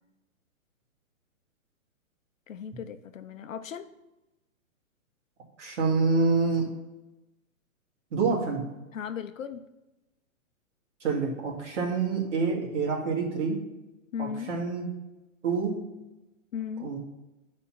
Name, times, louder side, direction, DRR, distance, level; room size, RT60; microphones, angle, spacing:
voice 1, 2.5-3.9 8.9-9.6 14.1-14.5 16.5-16.9, left 7 dB, 70° left, 10 dB, 0.7 m, -36 dB
voice 2, 5.6-6.7 8.1-8.7 11.0-13.6 14.2-14.9 15.4-15.8 16.8-17.0, right 4 dB, 60° right, 0 dB, 2.3 m, -27 dB
9.7 x 4.4 x 5.8 m, 1.0 s
hypercardioid pair, 170°, 41 cm